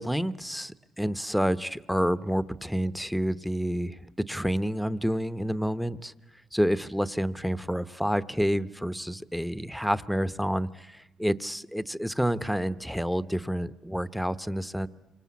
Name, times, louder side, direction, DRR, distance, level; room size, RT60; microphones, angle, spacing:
voice 1, 0.0-4.0 4.3-6.1 6.5-14.9, equal, ahead, 14 dB, 0.9 m, -29 dB
28.0 x 24.5 x 8.4 m, 1.0 s
cardioid pair, 90°, 0 cm